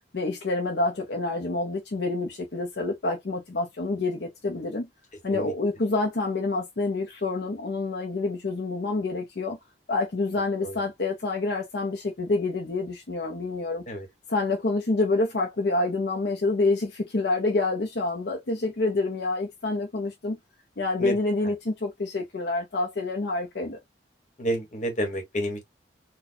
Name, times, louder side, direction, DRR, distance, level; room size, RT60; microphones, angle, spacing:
voice 1, 0.1-4.9 5.2-9.6 9.9-13.8 14.3-20.4 20.8-23.8, left 3 dB, 70° left, 0.6 m, -27 dB
voice 2, 24.4-25.6, right 1 dB, 45° left, 1.2 m, -29 dB
4.1 x 2.2 x 2.7 m
head